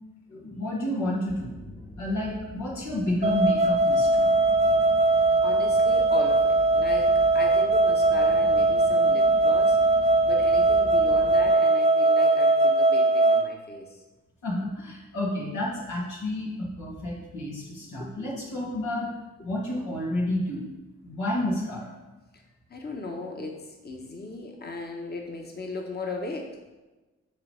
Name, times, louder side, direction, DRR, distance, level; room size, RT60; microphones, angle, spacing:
voice 1, 0.3-1.5 2.0-4.3 14.4-19.1 19.4-20.6 21.0-21.9, left 1 dB, 85° left, -4 dB, 2.0 m, -30 dB
sound 1, 1.3-11.5, equal, 10° left, 1.2 m, -43 dB
sound 2, 3.2-13.5, right 2 dB, 25° right, 0.6 m, -20 dB
voice 2, 5.4-9.8 10.2-14.0 17.9-18.4 19.4-19.5 22.3-22.4 22.7-26.6, left 3 dB, 35° left, 1 dB, 1.2 m, -37 dB
6.6 x 4.0 x 5.6 m, 1.1 s
supercardioid pair, 50°, 29 cm